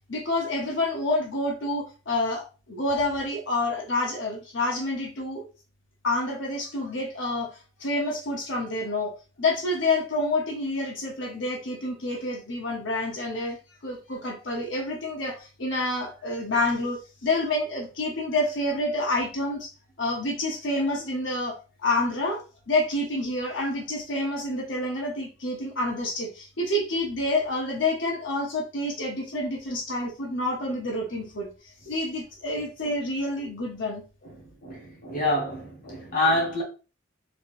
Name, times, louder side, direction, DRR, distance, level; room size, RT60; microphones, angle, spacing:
voice 1, 0.1-5.4 6.0-13.6 13.8-19.7 20.0-22.4 22.7-34.0, left 2 dB, 70° left, 0.9 m, -28 dB
voice 2, 34.6-36.6, left 1 dB, 45° left, 1.3 m, -26 dB
3.4 x 2.8 x 2.5 m
head